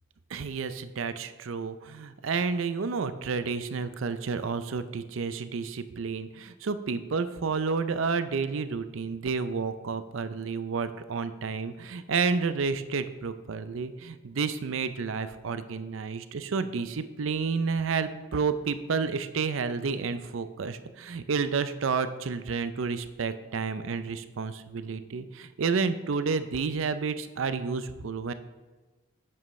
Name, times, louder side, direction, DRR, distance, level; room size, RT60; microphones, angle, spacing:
voice 1, 0.3-28.3, right 5 dB, 75° right, 12 dB, 0.5 m, -30 dB
10.0 x 7.5 x 3.2 m, 1.2 s
head